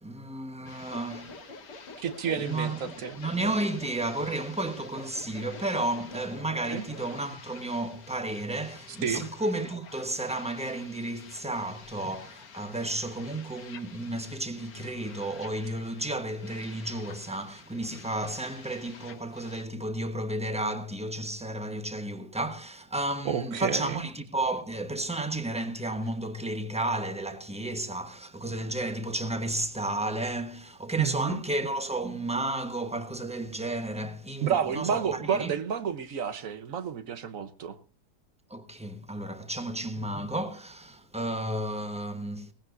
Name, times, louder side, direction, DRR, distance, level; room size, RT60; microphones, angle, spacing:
voice 1, 0.0-1.4 2.4-35.5 38.5-42.5, right 1 dB, 5° right, 0.9 m, -32 dB
sound 1, 0.6-19.6, left 6 dB, 60° left, 1.6 m, -51 dB
sound 2, 0.9-7.3, left 2 dB, 75° left, 2.5 m, -46 dB
voice 2, 2.0-3.2 6.7-6.8 9.0-9.3 23.2-24.0 31.0-31.4 34.4-37.8, right 8 dB, 55° right, 1.3 m, -30 dB
18.5 x 15.5 x 2.6 m
omnidirectional pair, 1.8 m